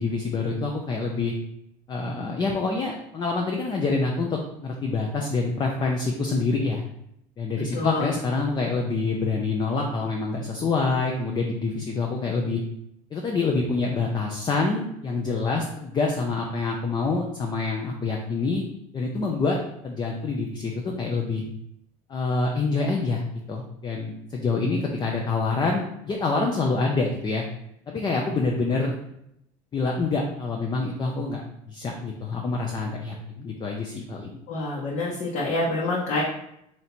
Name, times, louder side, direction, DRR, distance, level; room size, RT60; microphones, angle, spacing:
voice 1, 0.0-1.3 1.9-6.8 7.4-12.6 13.1-18.6 18.9-19.6 19.8-20.7 21.0-21.5 22.1-23.2 23.5-27.4 27.9-29.0 29.7-34.4, left 3 dB, 25° left, 0 dB, 0.6 m, -26 dB
voice 2, 7.7-8.1 34.5-36.2, left 2 dB, 55° left, -6 dB, 1.0 m, -27 dB
3.1 x 2.8 x 4.1 m, 0.77 s
supercardioid pair, 95°, 16 cm